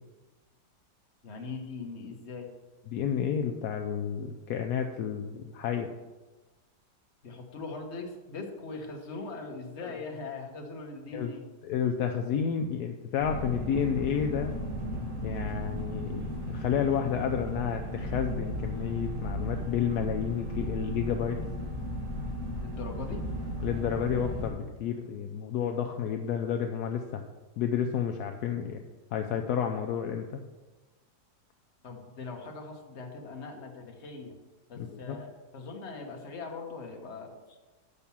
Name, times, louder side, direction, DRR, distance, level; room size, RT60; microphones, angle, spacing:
voice 1, 1.2-2.5 7.2-11.4 22.6-23.2 31.8-34.3 34.7-37.6, left 3 dB, 45° left, 2 dB, 1.4 m, -41 dB
voice 2, 2.9-5.9 9.8-9.9 11.1-11.3 11.6-14.5 15.2-21.4 23.6-27.2 27.6-28.8 29.1-30.4 34.8-35.2, left 8 dB, 75° left, 5 dB, 1.1 m, -31 dB
sound 1, 13.2-24.5, equal, 50° right, 1.7 m, -35 dB
6.9 x 5.8 x 7.0 m, 1.2 s
omnidirectional pair, 1.8 m